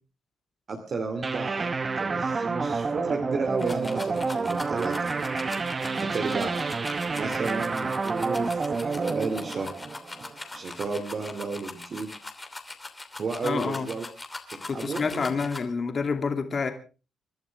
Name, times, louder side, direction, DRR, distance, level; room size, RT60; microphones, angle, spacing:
voice 1, 0.7-1.7 2.0-5.0 6.0-6.7 7.2-9.7 10.5-12.1 13.2-14.0 14.7-15.3, right 4 dB, 45° right, 3 dB, 2.6 m, -32 dB
sound 1, 1.2-10.6, right 4 dB, 30° right, 1.0 m, -29 dB
sound 2, 3.6-15.6, left 2 dB, 20° left, 2.9 m, -41 dB
voice 2, 13.4-13.9 14.7-16.7, left 5 dB, 40° left, 6 dB, 2.7 m, -28 dB
29.0 x 11.5 x 3.5 m, 0.34 s
cardioid pair, 90°, 0 cm